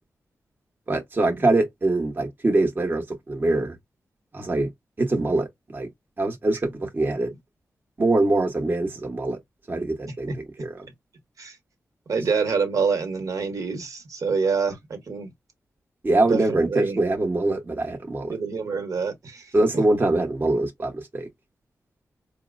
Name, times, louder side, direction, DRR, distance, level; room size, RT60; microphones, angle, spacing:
voice 1, 0.9-3.8 4.3-4.7 5.0-5.5 5.7-5.9 6.2-7.3 8.0-9.4 9.7-10.7 16.0-18.3 19.5-21.3, right 2 dB, 35° right, 1.0 m, -23 dB
voice 2, 12.1-15.3 16.3-17.0 18.3-19.8, right 5 dB, 70° right, 1.2 m, -26 dB
4.3 x 2.0 x 2.5 m
cardioid pair, 75°, 6 cm